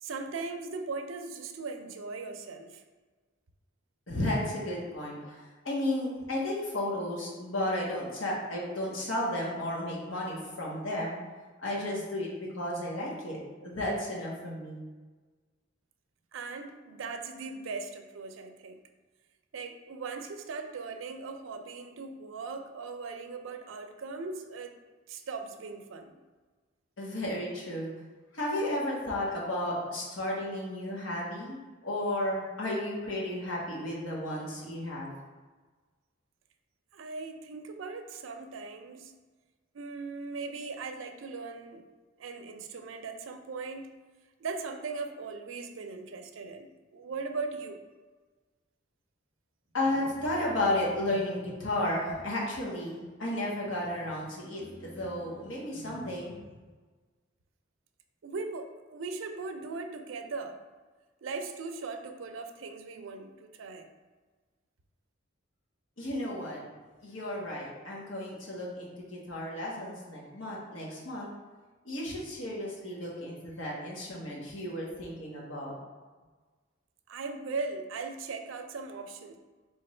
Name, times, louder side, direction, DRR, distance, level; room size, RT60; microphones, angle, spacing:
voice 1, 0.0-2.8 16.3-18.8 19.5-24.8 25.1-26.2 36.9-39.2 39.7-41.9 42.2-44.0 44.4-47.8 58.2-60.6 61.2-63.9 77.1-79.4, right 4 dB, 80° right, 6 dB, 0.4 m, -39 dB
voice 2, 4.1-11.2 11.6-14.8 27.0-27.9 28.3-31.6 31.8-35.1 49.7-56.4 66.0-66.6 67.0-71.3 71.8-75.7, left 1 dB, 85° left, -3 dB, 1.2 m, -33 dB
3.4 x 3.0 x 4.3 m, 1.4 s
head